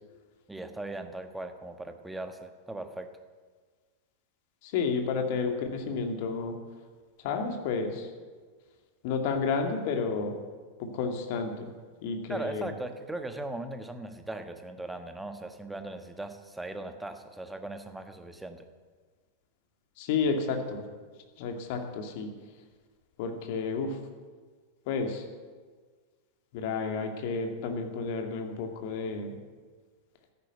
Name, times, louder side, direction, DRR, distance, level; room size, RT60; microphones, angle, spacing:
voice 1, 0.5-3.1 12.3-18.7, right 2 dB, 5° right, 7 dB, 1.3 m, -39 dB
voice 2, 4.6-6.6 7.2-8.1 9.0-10.4 10.8-11.7 12.0-12.7 20.0-20.9 21.4-22.3 23.2-24.0 24.9-25.2 26.5-29.3, left 4 dB, 50° left, 4 dB, 2.2 m, -31 dB
13.5 x 11.0 x 7.9 m, 1.5 s
figure-of-eight pair, 90°, 0 cm